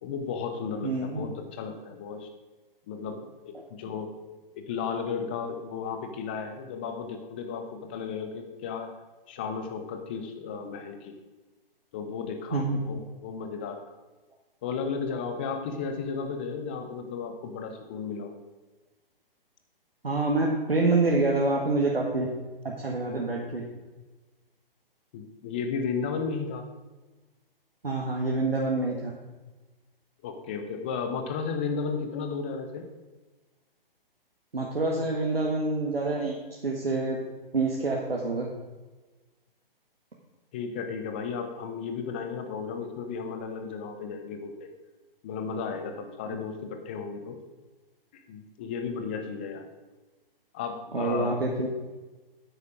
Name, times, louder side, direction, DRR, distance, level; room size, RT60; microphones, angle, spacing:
voice 1, 0.0-2.3 2.9-4.1 4.5-8.9 9.3-11.1 11.9-13.8 14.6-18.3 25.1-26.6 30.2-32.9 40.5-44.7 45.2-47.4 48.3-49.7 50.5-51.4, left 5 dB, 10° left, 6 dB, 0.4 m, -34 dB
voice 2, 0.8-1.3 12.5-12.8 20.0-22.3 22.6-23.6 27.8-29.1 34.5-36.4 36.6-37.2 37.5-38.5 46.3-46.4 50.9-51.7, right 3 dB, 75° right, -2 dB, 1.7 m, -26 dB
9.3 x 8.9 x 5.1 m, 1.2 s
figure-of-eight pair, 130°, 29 cm